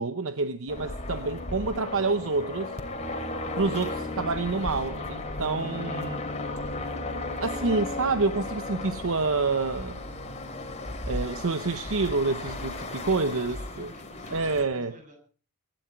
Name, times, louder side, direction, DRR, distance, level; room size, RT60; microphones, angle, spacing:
voice 1, 0.0-2.8 3.5-6.2 7.4-10.0 11.1-13.9 14.3-14.9, right 3 dB, 65° right, 0.9 m, -28 dB
sound 1, 0.7-14.6, left 2 dB, 30° left, 2.9 m, -35 dB
voice 2, 4.9-5.3 11.2-11.4 12.9-15.2, right 1 dB, 35° right, 7.3 m, -51 dB
24.5 x 12.0 x 4.6 m
head